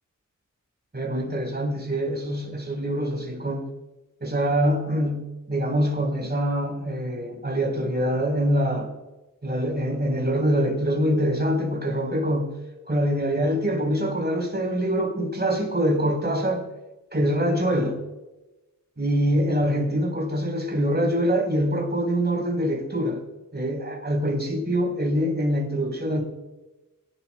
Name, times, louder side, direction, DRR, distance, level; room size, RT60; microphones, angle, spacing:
voice 1, 0.9-3.7 4.2-8.9 9.4-12.5 12.9-16.6 17.1-18.0 19.0-23.2 23.5-26.2, equal, 30° right, 1 dB, 3.9 m, -24 dB
22.5 x 12.0 x 2.2 m, 1.0 s
wide cardioid pair, 70°, 32 cm